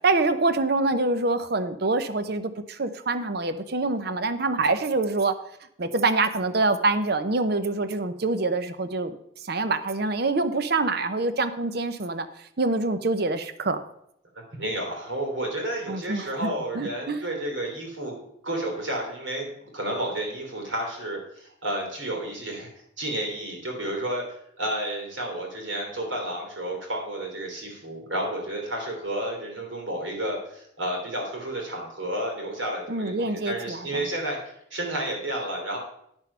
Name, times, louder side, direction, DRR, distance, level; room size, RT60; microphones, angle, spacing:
voice 1, 0.0-5.3 5.8-12.3 12.6-13.8 15.9-16.5 16.7-17.2 32.9-34.0, right 3 dB, 50° right, 11 dB, 0.7 m, -25 dB
voice 2, 14.5-22.7 23.0-24.2 24.6-35.8, right 1 dB, 75° right, 1 dB, 3.0 m, -31 dB
9.6 x 6.3 x 5.5 m, 0.75 s
head